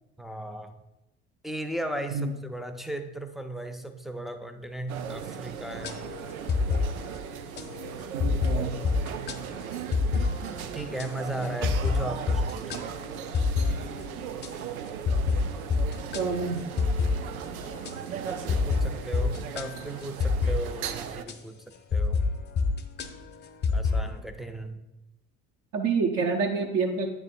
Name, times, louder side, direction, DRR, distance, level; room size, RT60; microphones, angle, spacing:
voice 1, 0.2-0.8 1.4-6.0 10.7-12.9 18.3-21.6 21.9-22.2 23.7-24.8, right 1 dB, ahead, 6 dB, 0.3 m, -36 dB
sound 1, 4.9-21.2, right 8 dB, 85° right, 0.5 m, -38 dB
sound 2, 5.8-21.3 21.9-24.2, left 4 dB, 25° left, 0.7 m, -29 dB
voice 2, 8.1-8.8 16.1-16.6 25.7-27.1, right 4 dB, 45° right, 2 dB, 0.7 m, -27 dB
8.7 x 3.4 x 4.2 m, 0.95 s
figure-of-eight pair, 60°, 42 cm